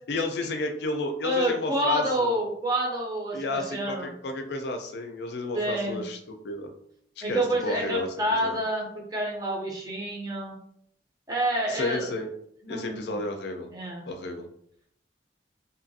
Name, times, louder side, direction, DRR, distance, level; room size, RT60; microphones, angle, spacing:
voice 1, 0.1-2.4 3.3-6.7 7.2-8.6 11.7-12.3 12.7-13.7 14.1-14.5, left 2 dB, 65° left, 5 dB, 0.4 m, -32 dB
voice 2, 1.2-4.1 5.5-6.0 7.2-10.6 11.3-12.2 12.6-13.2 13.7-14.1, right 1 dB, 20° right, -2 dB, 0.6 m, -28 dB
2.7 x 2.4 x 2.6 m, 0.70 s
head